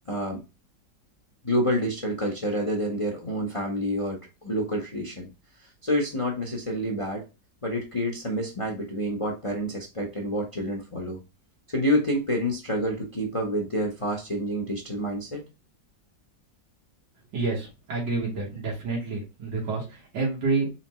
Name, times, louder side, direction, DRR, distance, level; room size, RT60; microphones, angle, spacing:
voice 1, 0.1-0.4 1.4-5.3 5.8-7.2 7.6-11.2 11.7-15.4, equal, 25° left, 0 dB, 0.7 m, -28 dB
voice 2, 17.3-20.8, right 3 dB, 80° right, -4 dB, 2.1 m, -29 dB
4.2 x 3.4 x 2.9 m, 0.28 s
omnidirectional pair, 1.9 m